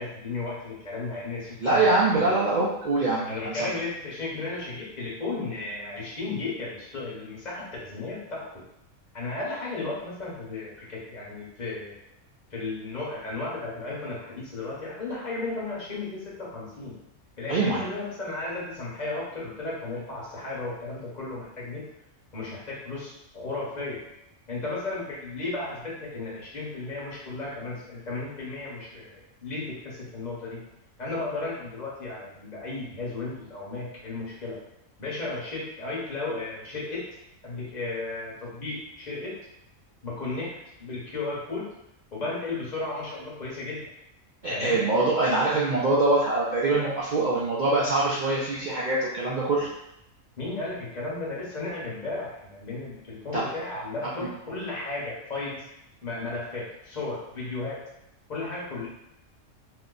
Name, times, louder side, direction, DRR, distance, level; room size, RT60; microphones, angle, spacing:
voice 1, 0.0-1.8 2.1-2.3 3.3-8.4 9.1-11.9 12.5-16.9 17.4-21.8 22.3-24.0 24.5-30.6 31.0-34.6 35.0-37.0 37.4-39.3 40.0-40.5 40.8-41.7 42.1-43.8 44.5-44.8 50.4-55.6 56.0-57.8 58.3-58.9, left 3 dB, 35° left, -6 dB, 1.0 m, -34 dB
voice 2, 1.6-3.7 17.5-17.8 44.4-49.7 53.3-53.4 54.2-54.3, right 2 dB, 70° right, -7 dB, 0.4 m, -24 dB
2.9 x 2.2 x 3.8 m, 0.84 s
omnidirectional pair, 1.5 m